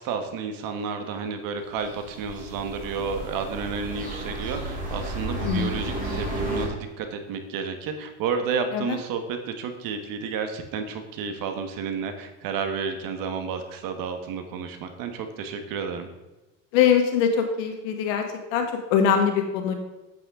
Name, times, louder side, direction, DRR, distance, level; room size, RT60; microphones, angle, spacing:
voice 1, 0.0-16.1, right 5 dB, 65° right, 7 dB, 1.4 m, -31 dB
sound 1, 1.7-6.7, right 1 dB, 20° right, 3.1 m, -32 dB
voice 2, 5.4-5.8 8.7-9.0 16.7-19.7, left 7 dB, 85° left, 5 dB, 1.6 m, -23 dB
8.4 x 7.7 x 3.8 m, 1.1 s
supercardioid pair, 100°, 37 cm